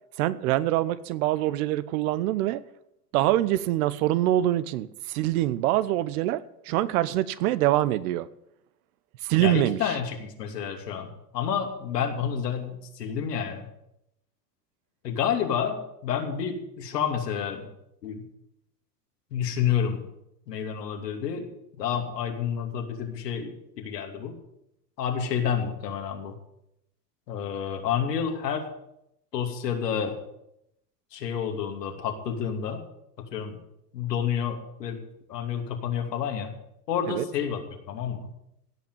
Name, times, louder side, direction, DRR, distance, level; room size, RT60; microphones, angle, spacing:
voice 1, 0.2-2.6 3.1-8.3 9.2-9.9 37.1-37.2, right 14 dB, 65° right, 16 dB, 1.0 m, -25 dB
voice 2, 9.4-13.7 15.0-17.7 18.0-18.2 19.3-20.0 20.5-21.5 21.8-24.4 25.0-26.3 27.3-28.7 29.3-30.2 31.1-32.8 33.3-33.6 33.9-35.0 35.3-36.5 36.9-37.6 37.9-38.3, left 8 dB, 85° left, 3 dB, 2.9 m, -29 dB
16.5 x 6.1 x 9.3 m, 0.79 s
hypercardioid pair, 100°, 47 cm